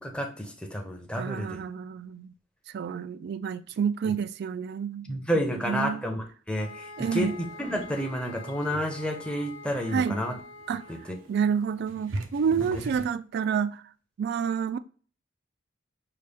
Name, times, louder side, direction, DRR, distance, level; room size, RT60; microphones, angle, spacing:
voice 1, 0.0-1.6 4.0-4.2 5.1-10.4 10.9-11.2 12.6-12.8, equal, 5° left, 0.7 m, -30 dB
voice 2, 1.2-2.3 2.7-6.0 7.0-7.3 9.9-10.2 10.7-10.8 11.3-13.8 14.2-14.8, right 7 dB, 55° right, 0.3 m, -29 dB
sound 1, 6.6-11.3, left 3 dB, 70° left, 0.6 m, -45 dB
sound 2, 6.6-13.1, right 2 dB, 85° right, 0.7 m, -43 dB
6.5 x 2.2 x 3.4 m
head